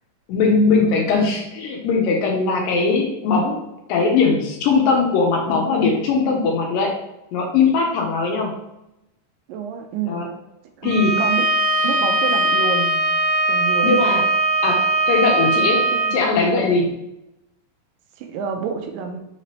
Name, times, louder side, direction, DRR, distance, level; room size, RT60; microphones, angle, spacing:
voice 1, 0.3-3.6 3.9-6.9 7.3-8.6 10.1-10.3 10.8-11.2 13.8-14.2 14.6-16.9, left 4 dB, 85° left, 0 dB, 2.4 m, -20 dB
voice 2, 9.5-10.3 10.8-11.5 11.8-13.0 13.5-14.0 15.6-16.2 18.2-19.2, right 6 dB, 85° right, 5 dB, 2.2 m, -28 dB
Bowed string instrument, 10.8-16.2, right 2 dB, 65° right, 1.5 m, -20 dB
5.8 x 3.1 x 2.8 m, 0.90 s
omnidirectional pair, 3.9 m